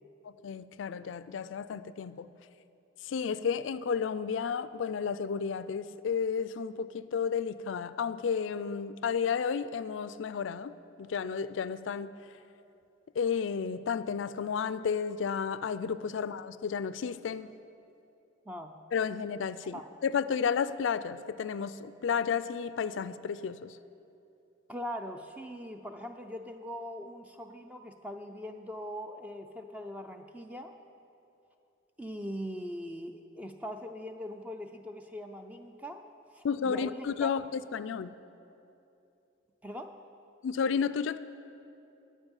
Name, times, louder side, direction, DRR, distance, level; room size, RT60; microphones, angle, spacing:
voice 1, 0.2-2.3 3.0-12.1 13.2-17.5 18.9-23.7 36.4-38.1 40.4-41.2, left 6 dB, 75° left, 15 dB, 0.4 m, -32 dB
voice 2, 18.5-18.8 19.7-19.9 24.7-30.8 32.0-36.0 36.3-37.3 39.6-40.0, equal, 10° right, 6 dB, 0.4 m, -41 dB
9.6 x 9.0 x 7.1 m, 2.7 s
head